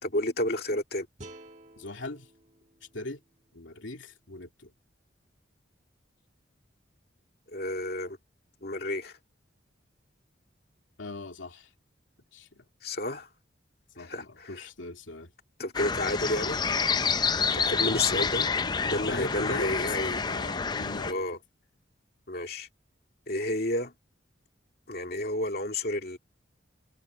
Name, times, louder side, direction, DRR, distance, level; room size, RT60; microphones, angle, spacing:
voice 1, 0.0-1.1 7.5-8.2 8.6-9.2 12.8-13.3 14.0-14.7 15.6-16.6 17.5-18.4 18.9-20.3 21.1-21.4 22.3-22.7 23.3-23.9 24.9-26.2, left 1 dB, 55° left, 2.3 m, -31 dB
sound 1, 1.2-4.3, right 1 dB, 35° right, 2.3 m, -52 dB
voice 2, 1.8-2.3 2.9-3.2 3.5-4.7 11.0-11.7 12.3-12.6 14.0-15.3 17.9-19.7 20.2-21.2, left 2 dB, 85° left, 2.5 m, -40 dB
sound 2, 15.7-21.1, left 5 dB, 20° left, 0.5 m, -28 dB
head